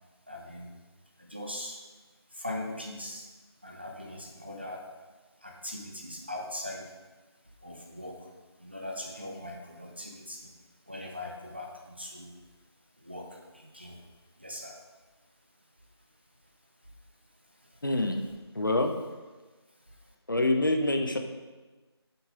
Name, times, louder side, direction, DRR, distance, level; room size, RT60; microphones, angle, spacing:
voice 1, 0.3-0.7 1.2-1.8 2.3-3.3 3.6-4.9 5.4-6.9 7.6-8.3 8.6-10.5 10.9-12.4 13.0-14.0 14.4-14.8 17.6-17.8 19.9-20.1, left 1 dB, 25° right, 0 dB, 0.7 m, -40 dB
voice 2, 17.8-18.2 18.5-18.9 20.3-21.2, left 2 dB, 50° left, 5 dB, 0.8 m, -26 dB
7.1 x 7.1 x 5.1 m, 1.3 s
figure-of-eight pair, 180°, 14 cm